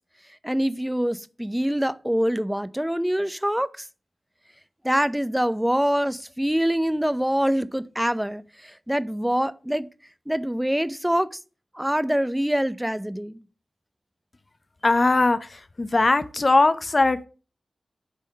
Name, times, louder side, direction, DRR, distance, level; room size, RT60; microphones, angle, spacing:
voice 1, 0.4-3.9 4.8-9.9 10.3-11.4 11.7-13.4, equal, 5° right, 0.6 m, -25 dB
voice 2, 14.8-17.3, left 2 dB, 45° left, 0.7 m, -20 dB
8.3 x 3.6 x 6.4 m
cardioid pair, 45°, 0 cm